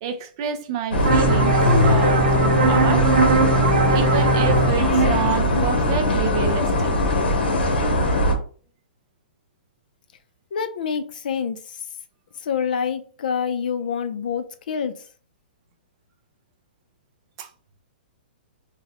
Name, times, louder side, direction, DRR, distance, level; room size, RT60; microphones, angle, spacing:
voice 1, 0.0-3.1 3.9-6.9 17.4-17.5, right 7 dB, 25° right, 0.3 m, -28 dB
sound 1, 0.9-8.3, left 1 dB, 75° left, 0.9 m, -20 dB
sound 2, 1.0-6.4, right 3 dB, 50° right, 0.7 m, -21 dB
voice 2, 10.5-11.6 12.5-14.9, left 7 dB, 55° left, 0.5 m, -26 dB
3.0 x 2.2 x 3.8 m
hypercardioid pair, 175°, 6 cm